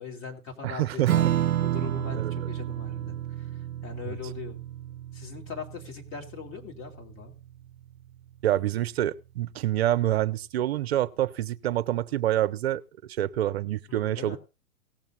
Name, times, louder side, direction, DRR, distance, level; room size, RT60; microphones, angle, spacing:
voice 1, 0.0-3.5 3.8-4.6 5.1-7.3 13.9-14.4, left 6 dB, 30° left, 3.4 m, -41 dB
voice 2, 0.6-1.1 2.2-2.3 4.1-4.2 8.4-12.8 13.2-14.4, right 13 dB, 50° right, 0.7 m, -27 dB
Strum, 1.1-7.9, right 12 dB, 90° right, 0.5 m, -30 dB
18.5 x 7.0 x 4.0 m
figure-of-eight pair, 115°, 41 cm